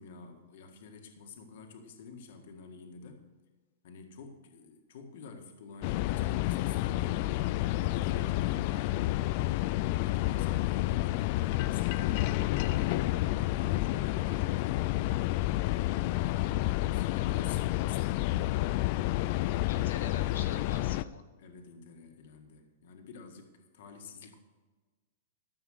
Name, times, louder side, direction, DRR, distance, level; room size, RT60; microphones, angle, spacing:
voice 1, 0.0-3.2 3.8-9.3 10.0-14.9 16.0-18.6 21.4-24.4, left 4 dB, 55° left, 4 dB, 1.7 m, -49 dB
sound 1, 5.8-21.0, left 17 dB, 35° left, 0.3 m, -30 dB
voice 2, 19.7-21.2, left 6 dB, 90° left, 3 dB, 1.7 m, -42 dB
14.0 x 7.1 x 6.4 m, 1.3 s
supercardioid pair, 170°, 0 cm